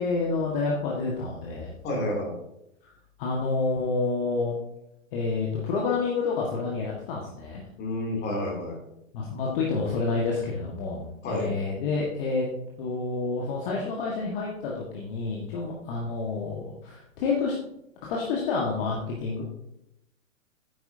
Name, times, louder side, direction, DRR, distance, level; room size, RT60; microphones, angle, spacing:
voice 1, 0.0-1.7 2.8-2.9 3.2-4.6 5.1-7.6 9.1-12.5 12.8-17.5 18.0-19.4, left 4 dB, 40° left, -3 dB, 1.8 m, -29 dB
voice 2, 1.8-2.3 7.8-8.8 11.2-11.5, left 1 dB, 25° left, -1 dB, 3.0 m, -29 dB
10.0 x 8.9 x 2.8 m, 0.84 s
figure-of-eight pair, 110°, 40 cm